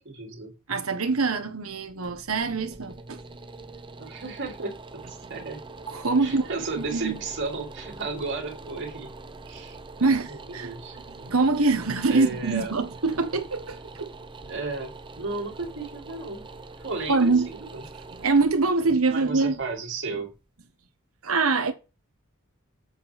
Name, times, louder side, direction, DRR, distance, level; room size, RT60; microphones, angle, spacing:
voice 1, 0.0-0.6 4.0-5.6 6.2-9.1 9.4-11.0 12.1-12.7 14.5-16.5 16.8-17.8 19.1-20.3, right 3 dB, 60° right, 3.3 m, -34 dB
voice 2, 0.7-3.2 5.9-6.5 6.8-7.2 10.0-10.7 11.1-14.1 17.1-17.5 18.1-19.5 21.2-21.7, right 3 dB, 80° right, 1.5 m, -24 dB
sound 1, 1.6-20.6, right 3 dB, 25° right, 0.7 m, -44 dB
8.0 x 7.6 x 3.6 m
head